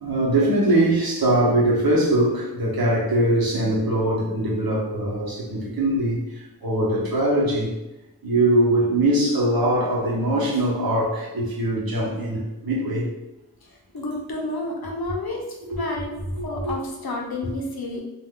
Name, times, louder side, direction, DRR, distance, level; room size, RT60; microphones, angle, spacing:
voice 1, 0.0-6.2 6.6-7.7 8.2-13.0 15.0-15.2 15.6-15.8 16.4-16.7, right 1 dB, 70° right, -4 dB, 0.9 m, -22 dB
voice 2, 13.9-15.4 15.7-16.1 16.4-18.0, left 2 dB, 75° left, -1 dB, 0.7 m, -30 dB
2.4 x 2.2 x 3.5 m, 0.98 s
wide cardioid pair, 55°, 37 cm